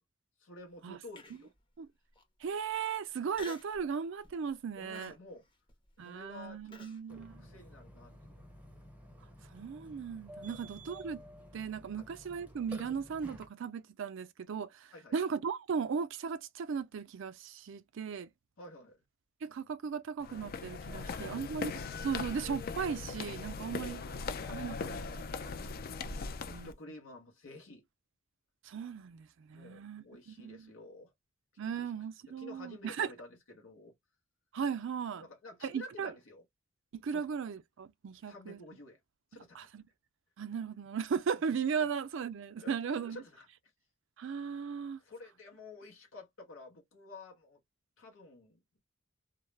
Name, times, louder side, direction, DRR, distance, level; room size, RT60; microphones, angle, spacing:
voice 1, 0.4-1.5 4.8-5.4 6.0-6.8 7.1-8.3 10.5-10.6 12.0-12.1 14.9-15.2 18.6-19.0 20.9-21.5 23.5-24.2 26.2-27.9 29.5-31.1 31.7-31.9 32.3-33.9 35.1-36.4 37.1-37.3 38.3-39.0 39.3-39.7 42.6-42.8 43.1-43.5 45.0-47.6 48.0-48.8, left 2 dB, 75° left, 0.8 m, -51 dB
Human voice, 1.2-1.6 2.1-2.2 3.3-3.8 4.2-4.5 4.9-7.0, left 2 dB, 25° left, 0.7 m, -50 dB
voice 2, 2.4-5.1 6.0-7.5 9.5-11.2 11.5-18.3 19.4-21.7 22.0-24.0 24.5-25.0 25.4-25.5 26.4-26.7 28.6-30.7 31.6-33.1 34.5-35.3 35.7-36.1 37.0-38.6 39.5-39.8 40.4-43.2 44.2-45.0, right 6 dB, 65° right, 0.4 m, -37 dB
Burping eructation, 7.1-13.5, equal, 5° right, 0.6 m, -52 dB
sound 1, 20.2-26.7, left 4 dB, 45° left, 0.4 m, -40 dB
2.2 x 2.0 x 3.1 m
head